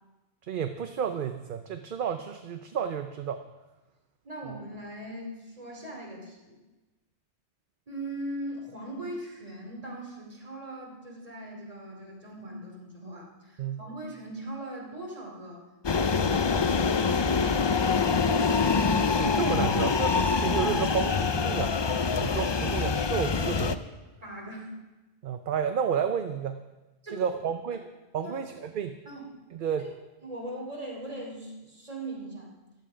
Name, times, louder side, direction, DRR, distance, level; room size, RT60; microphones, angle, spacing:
voice 1, 0.4-3.4 13.6-13.8 19.2-21.8 22.2-23.8 25.2-26.6 27.1-27.8 28.1-29.0 29.5-29.9, right 8 dB, 55° right, 8 dB, 0.8 m, -31 dB
voice 2, 4.2-6.6 7.9-15.6 15.9-17.8 24.2-24.8 27.0-27.3 28.2-28.4 29.0-29.2 30.2-32.5, right 1 dB, 35° right, 0 dB, 3.0 m, -40 dB
sound 1, 15.8-23.7, left 5 dB, 40° left, 0.4 m, -25 dB
14.5 x 12.0 x 5.0 m, 1.1 s
omnidirectional pair, 1.1 m